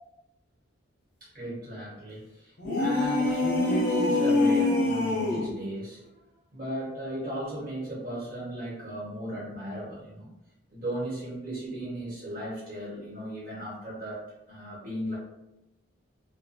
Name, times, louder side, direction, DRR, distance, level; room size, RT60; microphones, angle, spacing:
voice 1, 1.2-6.0 6.5-10.3 10.7-15.2, equal, 45° right, -8 dB, 1.2 m, -36 dB
sound 1, 2.6-5.6, left 2 dB, 45° left, 0.5 m, -25 dB
2.4 x 2.2 x 2.6 m, 0.90 s
head